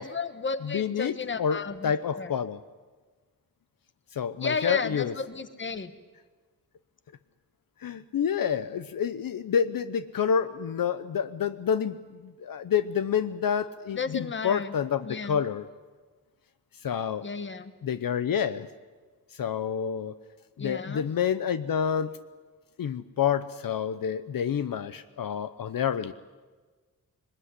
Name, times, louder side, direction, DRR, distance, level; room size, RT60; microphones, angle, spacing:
voice 1, 0.0-2.3 4.4-5.9 13.9-14.7 15.0-15.4 17.2-17.7 20.6-21.1, left 4 dB, 35° left, 11 dB, 1.3 m, -33 dB
voice 2, 0.6-2.6 4.1-5.1 7.8-15.6 16.8-17.3 17.8-18.7 19.3-20.1 20.6-22.1 22.8-26.1, left 8 dB, 70° left, 12 dB, 0.8 m, -28 dB
22.5 x 21.0 x 9.7 m, 1.4 s
wide cardioid pair, 155°, 35 cm